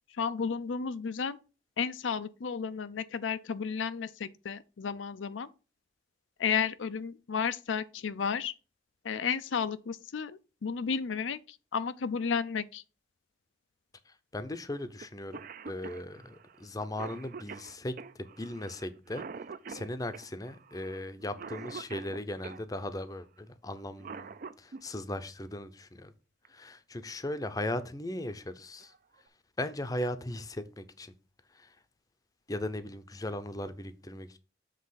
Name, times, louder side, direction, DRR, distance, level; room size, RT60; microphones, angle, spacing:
voice 1, 0.2-1.4 1.8-5.5 6.4-8.5 9.0-12.8, left 6 dB, 85° left, 0.5 m, -33 dB
voice 2, 14.1-19.3 19.7-26.1 26.5-28.9 29.6-31.1 31.5-31.8 32.5-34.4, left 1 dB, 20° left, 0.6 m, -38 dB
Cough, 15.0-15.1 15.3-22.6 23.8-24.8 26.4-26.5 27.6-27.9 28.3-28.4 28.8-29.3, right 5 dB, 45° right, 0.4 m, -45 dB
7.5 x 3.4 x 5.6 m
head